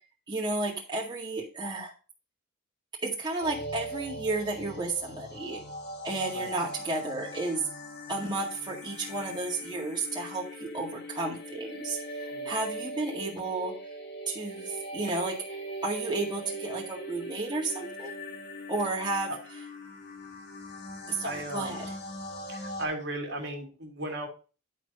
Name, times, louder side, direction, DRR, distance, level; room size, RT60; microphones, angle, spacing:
voice 1, 0.3-1.9 3.0-5.6 6.0-7.6 8.1-13.7 14.3-18.1 18.7-19.3 21.1-21.9, right 2 dB, 20° right, -3 dB, 1.9 m, -32 dB
sound 1, 3.4-22.9, equal, 50° left, 2.0 m, -40 dB
voice 2, 21.2-21.8 22.5-24.3, right 1 dB, 55° right, 2 dB, 2.2 m, -36 dB
10.5 x 4.5 x 5.3 m, 0.34 s
head